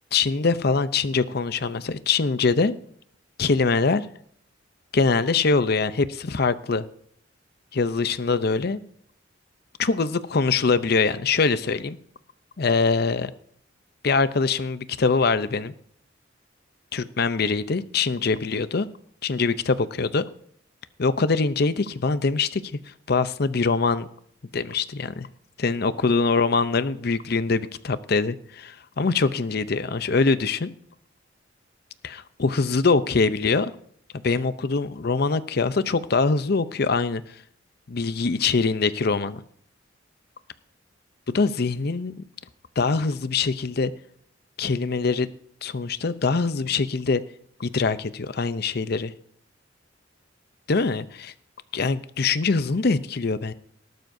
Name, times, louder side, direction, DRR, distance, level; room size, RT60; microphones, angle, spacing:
voice 1, 0.1-2.7 3.4-4.1 4.9-6.9 7.7-8.8 9.8-12.0 12.6-13.3 14.0-15.7 16.9-18.9 19.2-20.3 21.0-24.1 24.5-25.3 25.6-30.7 32.0-33.7 34.2-37.4 37.9-39.4 41.3-42.1 42.8-43.9 44.6-45.3 45.6-47.2 47.6-49.1 50.7-51.3 51.7-53.5, left 4 dB, 55° left, 0.6 m, -23 dB
18.5 x 12.0 x 2.7 m
head